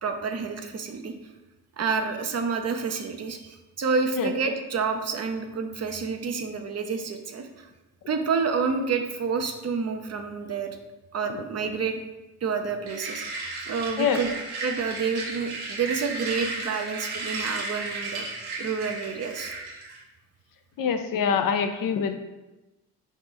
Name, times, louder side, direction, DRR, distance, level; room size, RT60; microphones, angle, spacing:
voice 1, 0.0-1.1 1.8-7.7 8.1-10.7 11.1-12.0 12.4-14.3 14.6-18.3 18.6-19.5, right 5 dB, 40° right, 5 dB, 0.6 m, -29 dB
sound 1, 12.9-20.0, right 3 dB, 70° right, 1.1 m, -34 dB
voice 2, 20.8-22.2, left 7 dB, 60° left, 7 dB, 0.5 m, -24 dB
3.8 x 3.1 x 3.7 m, 1.1 s
supercardioid pair, 70°, 39 cm